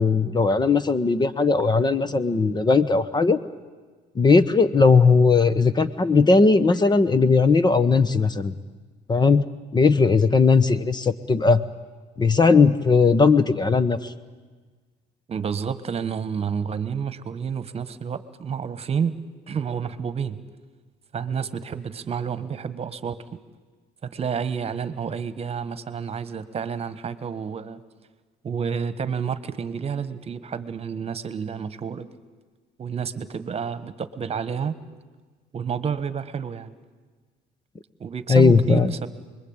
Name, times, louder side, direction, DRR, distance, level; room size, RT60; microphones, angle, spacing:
voice 1, 0.0-3.4 4.1-8.5 9.1-9.5 9.7-11.6 12.2-14.1 38.3-38.9, left 4 dB, 25° left, 14 dB, 1.1 m, -18 dB
voice 2, 15.3-19.1 19.5-20.4 21.1-23.2 24.0-27.8 28.4-32.1 32.8-34.7 35.5-36.7 38.0-39.1, right 6 dB, 35° right, 13 dB, 1.4 m, -29 dB
29.0 x 21.5 x 9.0 m, 1.4 s
cardioid pair, 110°, 17 cm